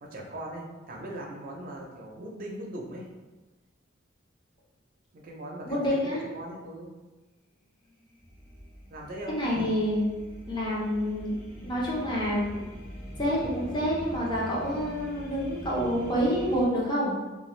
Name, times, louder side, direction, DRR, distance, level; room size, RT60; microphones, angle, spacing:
voice 1, 0.0-3.1 5.1-6.9 8.9-9.4 15.9-16.0, right 1 dB, 45° right, -1 dB, 0.5 m, -40 dB
voice 2, 5.7-6.2 9.3-10.0 10.5-11.4 11.6-12.4 13.2-17.1, equal, 25° left, -6 dB, 0.7 m, -27 dB
sound 1, 7.9-16.6, equal, 50° left, 1.1 m, -43 dB
2.5 x 2.3 x 3.1 m, 1.2 s
head